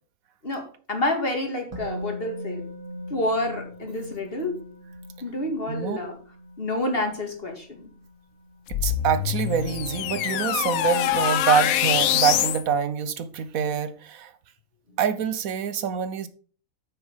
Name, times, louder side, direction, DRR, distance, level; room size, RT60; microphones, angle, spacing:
voice 1, 0.4-2.6 3.1-4.5 5.2-6.1 6.6-7.9, left 1 dB, 45° left, 2.4 m, -28 dB
Musical instrument, 1.7-9.6 9.9-10.1, left 1 dB, 25° right, 2.7 m, -41 dB
voice 2, 5.7-6.0 8.7-14.3 15.0-16.3, right 7 dB, 85° right, 1.3 m, -25 dB
sound 1, 8.7-12.6, left 12 dB, 90° left, 1.1 m, -24 dB
8.4 x 6.2 x 5.6 m
omnidirectional pair, 1.4 m